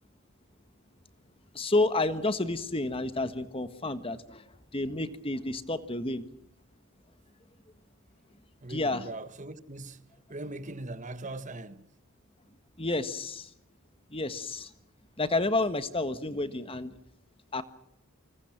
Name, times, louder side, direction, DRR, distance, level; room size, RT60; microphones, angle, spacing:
voice 1, 1.5-6.2 8.7-9.1 12.8-13.5 14.1-14.7 15.2-16.9 17.5-17.6, left 2 dB, 25° left, 1.5 m, -30 dB
voice 2, 8.6-10.0 10.3-11.9, right 2 dB, 35° right, 1.4 m, -40 dB
28.5 x 25.5 x 6.0 m
head